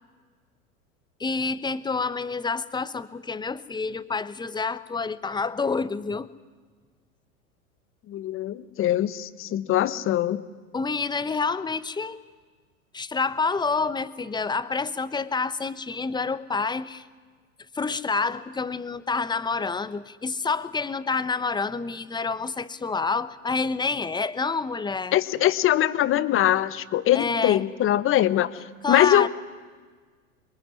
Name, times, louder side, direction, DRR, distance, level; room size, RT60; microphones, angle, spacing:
voice 1, 1.2-6.3 10.7-12.2 12.9-17.1 17.7-25.2 27.1-27.6 28.8-29.3, left 4 dB, 10° left, 15 dB, 1.0 m, -28 dB
voice 2, 8.1-10.4 25.1-28.5 28.9-29.3, left 12 dB, 30° left, 15 dB, 1.2 m, -22 dB
26.5 x 22.5 x 10.0 m, 1.5 s
figure-of-eight pair, 90°, 42 cm